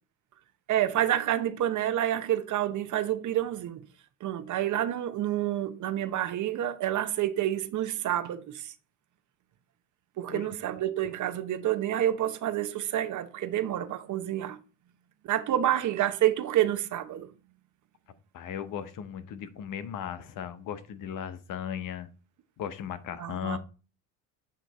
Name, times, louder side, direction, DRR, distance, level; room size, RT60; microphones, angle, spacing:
voice 1, 0.7-3.9 4.2-8.7 10.2-14.6 15.2-17.3 23.2-23.6, right 12 dB, 50° right, 0.8 m, -28 dB
voice 2, 18.3-22.1 22.6-23.6, left 8 dB, 55° left, 0.8 m, -36 dB
8.1 x 3.1 x 4.0 m
supercardioid pair, 85°, 38 cm